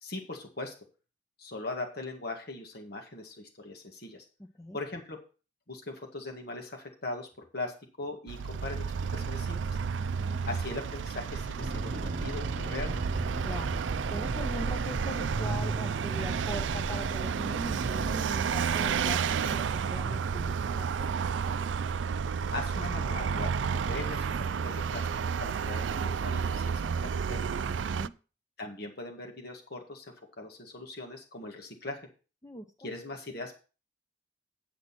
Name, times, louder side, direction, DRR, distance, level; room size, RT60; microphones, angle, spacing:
voice 1, 0.0-0.7 1.4-4.3 4.7-5.2 5.7-9.8 10.5-12.9 22.5-24.3 24.6-25.1 25.4-26.7 27.0-27.5 28.6-32.0 32.8-33.6, left 2 dB, 60° left, 2 dB, 1.8 m, -40 dB
Vehicle, 8.3-28.1, right 6 dB, 80° right, 0.4 m, -31 dB
voice 2, 10.0-10.4 13.4-13.8 14.1-21.1 27.7-28.1 32.4-32.9, equal, 20° left, 6 dB, 0.7 m, -41 dB
Accelerating revving vroom, 11.6-18.2, right 2 dB, 45° right, 0.7 m, -35 dB
8.7 x 7.9 x 4.2 m, 0.34 s
head